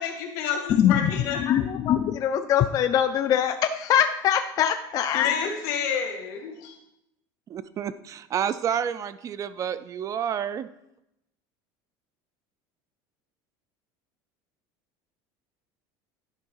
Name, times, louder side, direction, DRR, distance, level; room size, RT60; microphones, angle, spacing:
voice 1, 0.0-1.4 5.1-6.8, left 7 dB, 85° left, 2 dB, 1.9 m, -29 dB
voice 2, 0.8-5.5, left 10 dB, 35° left, 8 dB, 0.4 m, -23 dB
voice 3, 7.5-10.7, right 8 dB, 30° right, 14 dB, 0.4 m, -29 dB
10.5 x 3.6 x 5.5 m, 0.84 s
cardioid pair, 140°, 10 cm